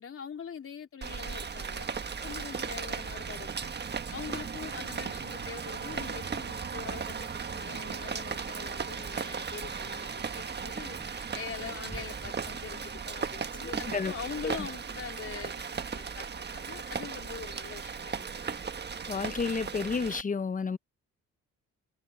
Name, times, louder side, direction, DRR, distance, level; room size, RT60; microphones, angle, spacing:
voice 1, 0.0-1.9 2.2-3.7 4.1-18.6, left 7 dB, 45° left, 3.7 m, -43 dB
Rain, 1.0-20.2, right 6 dB, 35° right, 1.5 m, -37 dB
sound 1, 1.6-16.1, right 2 dB, 15° right, 6.3 m, -54 dB
voice 2, 13.6-14.1 14.4-14.5 19.1-20.8, left 5 dB, 25° left, 0.8 m, -31 dB
cardioid pair, 90°, 30 cm